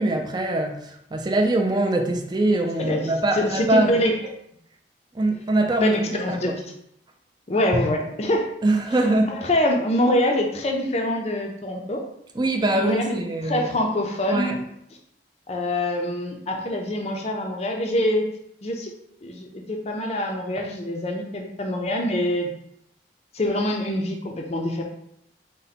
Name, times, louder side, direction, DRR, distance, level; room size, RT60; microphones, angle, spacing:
voice 1, 0.0-4.0 5.1-6.6 7.7-7.8 8.6-9.4 12.4-13.7 14.3-14.6, right 2 dB, 25° right, 0.4 m, -23 dB
voice 2, 2.8-4.1 5.8-6.6 7.5-8.5 9.3-12.0 12.7-13.2 13.4-14.6 15.5-18.2 18.6-18.9 19.2-22.5 23.3-24.8, left 1 dB, 35° left, 0.5 m, -25 dB
3.9 x 2.1 x 4.1 m
head